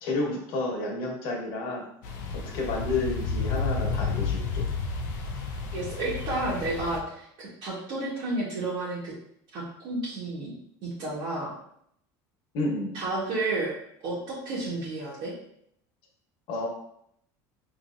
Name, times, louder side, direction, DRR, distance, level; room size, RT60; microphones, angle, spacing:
voice 1, 0.0-1.9 2.3-4.7 12.5-13.0 16.5-16.7, left 2 dB, 65° left, 0 dB, 1.4 m, -30 dB
sound 1, 2.0-7.0, left 4 dB, 85° left, 0.7 m, -31 dB
voice 2, 5.7-7.2 7.6-9.1 9.5-10.5 10.8-11.5 12.9-13.7 14.0-15.3, right 2 dB, 60° right, -8 dB, 1.7 m, -31 dB
5.0 x 3.3 x 2.6 m, 0.70 s
supercardioid pair, 120°, 9 cm